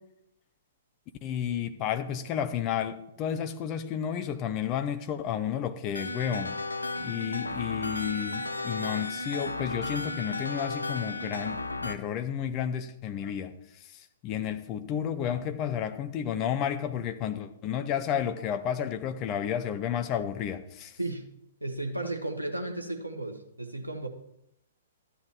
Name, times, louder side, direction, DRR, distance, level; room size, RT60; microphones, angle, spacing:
voice 1, 1.2-6.6 7.0-13.5 14.2-20.9, left 9 dB, 30° left, 9 dB, 0.8 m, -31 dB
sound 1, 5.9-11.9, left 2 dB, 80° left, 0.6 m, -34 dB
voice 2, 6.9-7.5 21.0-21.3 21.6-24.1, right 2 dB, 85° right, 4 dB, 1.2 m, -35 dB
13.0 x 9.7 x 3.1 m, 0.80 s
figure-of-eight pair, 115°, 0 cm